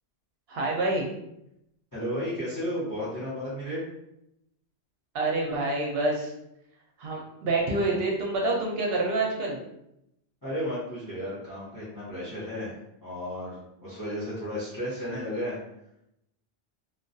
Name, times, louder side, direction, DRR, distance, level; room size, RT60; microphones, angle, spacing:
voice 1, 0.5-1.1 5.1-6.3 7.0-9.6, right 2 dB, 65° right, -1 dB, 0.7 m, -27 dB
voice 2, 1.9-3.8 10.4-15.6, equal, 20° left, -9 dB, 0.8 m, -33 dB
2.3 x 2.2 x 2.6 m, 0.82 s
omnidirectional pair, 1.1 m